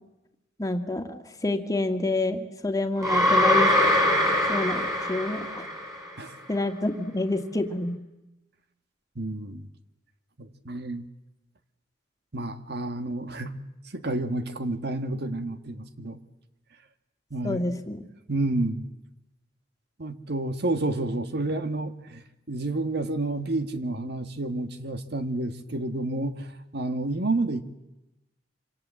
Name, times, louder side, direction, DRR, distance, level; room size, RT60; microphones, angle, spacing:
voice 1, 0.6-3.7 4.5-5.7 6.5-8.0 17.4-18.0, left 2 dB, 20° left, 5 dB, 2.0 m, -28 dB
sound 1, 3.0-6.1, left 1 dB, 20° right, 6.2 m, -23 dB
voice 2, 9.1-9.7 10.4-11.0 12.3-13.6 13.9-16.2 17.3-17.6 18.3-18.9 20.0-22.2 22.5-27.6, right 2 dB, 60° right, 9 dB, 1.6 m, -30 dB
26.5 x 26.5 x 7.6 m, 0.95 s
head